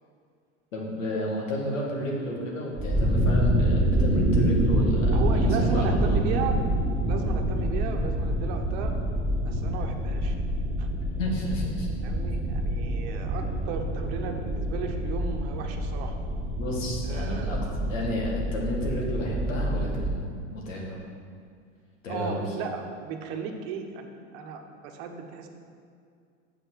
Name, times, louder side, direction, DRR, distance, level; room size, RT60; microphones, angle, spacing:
voice 1, 0.7-6.2 11.2-11.9 16.6-21.0 22.0-22.6, left 1 dB, 85° left, -2 dB, 2.1 m, -32 dB
sound 1, 2.8-20.2, right 1 dB, 5° right, 2.2 m, -26 dB
voice 2, 5.1-6.6 7.0-8.9 9.4-10.4 10.8-10.9 12.0-16.2 17.0-17.6 22.1-25.5, right 6 dB, 60° right, 4 dB, 1.1 m, -35 dB
7.3 x 5.6 x 6.2 m, 2.3 s
hypercardioid pair, 105°, 38 cm